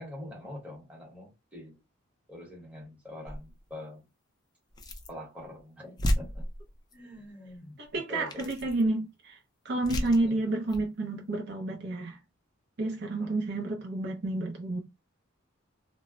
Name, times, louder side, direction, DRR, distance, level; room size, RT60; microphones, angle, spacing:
voice 1, 0.0-1.8 2.3-4.1 5.1-6.5 6.9-8.7 10.0-10.4 13.2-13.4, left 1 dB, 5° right, 0.9 m, -45 dB
sound 1, 3.2-3.6 4.7-5.2 5.6-5.7 6.0-6.9 7.8-8.0 8.3-8.9 9.8-10.3 10.7-10.9, equal, 20° left, 0.4 m, -33 dB
voice 2, 7.9-9.4 9.7-12.2 12.8-14.8, right 2 dB, 50° right, 0.5 m, -30 dB
2.1 x 2.0 x 3.6 m
head